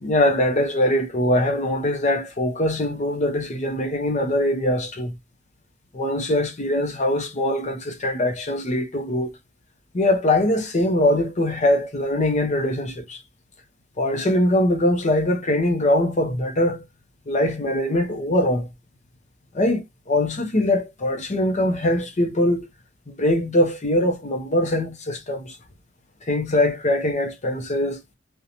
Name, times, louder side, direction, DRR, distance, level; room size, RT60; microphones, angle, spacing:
voice 1, 0.0-5.1 5.9-9.3 9.9-13.2 14.0-16.8 17.3-18.7 19.5-22.7 23.1-25.6 26.2-28.0, left 1 dB, 35° left, 0.6 m, -22 dB
2.6 x 2.1 x 2.8 m
head